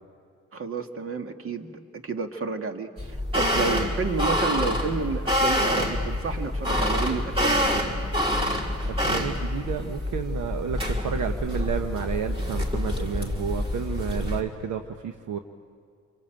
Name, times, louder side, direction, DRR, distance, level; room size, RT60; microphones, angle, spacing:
voice 1, 0.5-7.9, right 4 dB, 45° right, 6 dB, 2.1 m, -31 dB
sound 1, 3.0-14.4, left 1 dB, 20° right, 4.8 m, -27 dB
voice 2, 8.9-15.4, right 7 dB, 75° right, 6 dB, 1.3 m, -31 dB
28.5 x 23.0 x 9.2 m, 2.2 s
cardioid pair, 90°, 30 cm